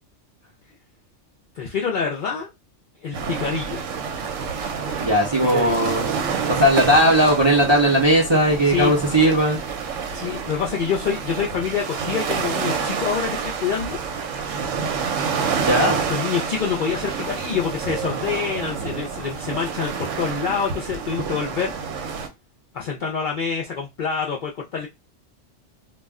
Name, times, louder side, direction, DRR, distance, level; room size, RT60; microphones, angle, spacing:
voice 1, 1.6-2.5 3.0-3.8 5.4-5.9 8.6-8.9 10.1-14.0 16.1-21.7 22.7-24.9, left 6 dB, 65° left, 0.5 m, -26 dB
sound 1, 3.1-22.3, right 6 dB, 85° right, 0.9 m, -28 dB
voice 2, 5.0-6.1 6.5-9.6 15.6-16.0, right 1 dB, 35° right, 0.5 m, -18 dB
2.3 x 2.1 x 3.5 m
omnidirectional pair, 1.3 m